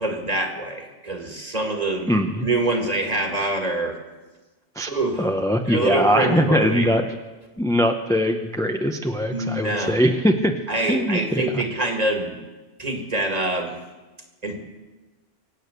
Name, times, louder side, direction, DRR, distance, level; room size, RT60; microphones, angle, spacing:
voice 1, 0.0-2.1 2.4-4.0 4.9-5.3 5.7-6.9 9.3-10.0 10.7-12.4 12.8-13.8 14.4-14.6, right 2 dB, 30° right, 3 dB, 2.0 m, -25 dB
voice 2, 2.1-2.5 4.8-4.9 5.2-7.0 7.6-10.5 10.9-11.6, equal, 5° left, 5 dB, 0.6 m, -21 dB
24.0 x 8.6 x 6.8 m, 1.2 s
omnidirectional pair, 1.2 m